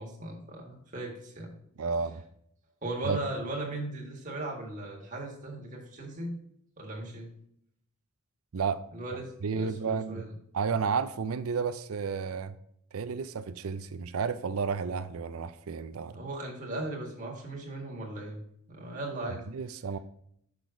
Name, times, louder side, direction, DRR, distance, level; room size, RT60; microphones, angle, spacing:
voice 1, 0.0-1.5 2.8-6.4 6.8-7.3 8.9-10.3 16.1-18.4 18.7-19.4, right 2 dB, 35° right, -1 dB, 1.7 m, -37 dB
voice 2, 1.8-2.2 3.0-3.2 8.5-8.8 9.4-10.3 10.5-12.6 12.9-16.2 19.5-20.0, right 5 dB, 75° right, 12 dB, 0.5 m, -32 dB
6.6 x 6.0 x 3.8 m, 0.72 s
head